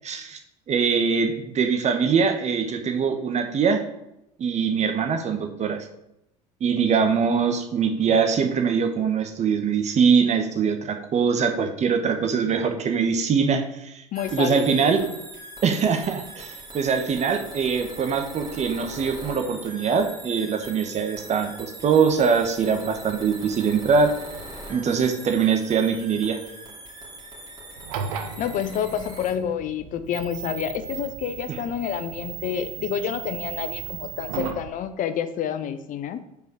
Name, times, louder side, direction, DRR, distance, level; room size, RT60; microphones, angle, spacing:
voice 1, 0.0-0.4 0.7-3.8 4.4-5.8 6.6-14.0 14.3-15.0 15.6-24.1 24.7-26.4 31.5-31.6, right 6 dB, 40° right, 6 dB, 1.2 m, -23 dB
voice 2, 14.1-15.1 28.4-36.2, left 8 dB, 45° left, 11 dB, 0.7 m, -29 dB
sound 1, 14.1-29.3, right 1 dB, 20° right, 2.6 m, -41 dB
sound 2, 27.8-34.7, right 8 dB, 80° right, 0.8 m, -36 dB
5.4 x 4.7 x 6.2 m, 0.85 s
hypercardioid pair, 85°, 18 cm